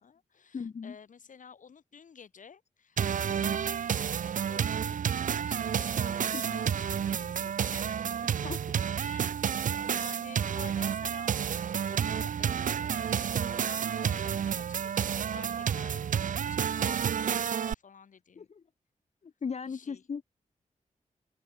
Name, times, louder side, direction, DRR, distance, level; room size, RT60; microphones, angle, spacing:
voice 1, 0.0-3.0 3.2-8.3 8.9-9.3 9.8-18.5 19.7-20.0, left 6 dB, 75° left, 6.5 m, -51 dB
voice 2, 0.5-1.0 6.3-6.6 8.4-8.6 18.4-18.6 19.2-20.2, left 5 dB, 55° left, 1.1 m, -37 dB
sound 1, 3.0-17.7, right 8 dB, 80° right, 0.9 m, -30 dB
open air
cardioid pair, 65°, 13 cm